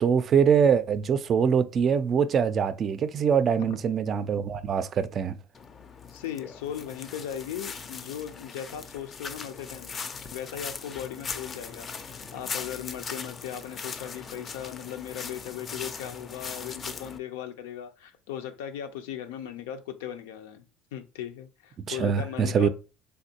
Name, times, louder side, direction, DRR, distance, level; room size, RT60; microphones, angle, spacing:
voice 1, 0.0-5.4 21.9-22.7, right 7 dB, 40° right, 0.4 m, -23 dB
sound 1, 5.5-17.2, left 5 dB, 35° left, 0.4 m, -39 dB
voice 2, 6.1-9.9 10.3-20.6 20.9-22.7, left 10 dB, 90° left, 0.5 m, -38 dB
3.4 x 2.5 x 2.8 m
supercardioid pair, 100°, 0 cm